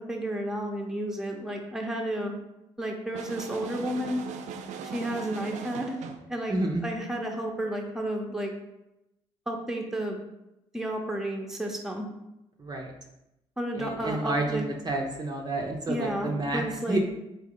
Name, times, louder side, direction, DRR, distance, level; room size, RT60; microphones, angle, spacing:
voice 1, 0.0-2.3 2.8-4.2 4.9-6.0 6.3-6.5 6.8-8.5 9.5-10.2 10.7-12.1 13.6-14.6 15.9-17.0, right 1 dB, 5° right, 1 dB, 0.8 m, -32 dB
sound 1, 3.1-6.3, right 6 dB, 75° right, 0.4 m, -39 dB
voice 2, 6.5-6.8 12.6-12.9 13.8-17.0, right 2 dB, 35° right, 0 dB, 0.6 m, -30 dB
3.7 x 2.8 x 3.7 m, 0.89 s
supercardioid pair, 65°, 12 cm